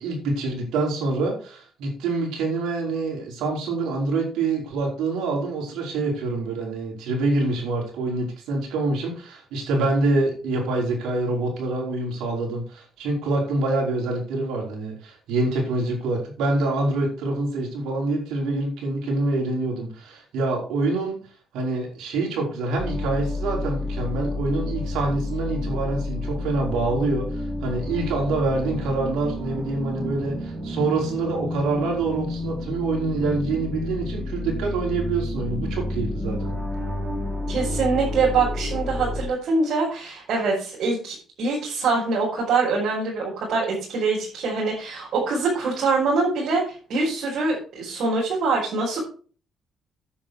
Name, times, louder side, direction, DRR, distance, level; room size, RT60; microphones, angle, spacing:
voice 1, 0.0-21.2 21.5-36.4, right 2 dB, 90° right, -1 dB, 5.2 m, -26 dB
sound 1, 22.8-39.3, left 2 dB, 30° right, 3.4 m, -30 dB
voice 2, 37.5-49.0, right 4 dB, 70° right, -5 dB, 5.3 m, -24 dB
9.9 x 8.8 x 4.7 m, 0.40 s
cardioid pair, 90°, 0 cm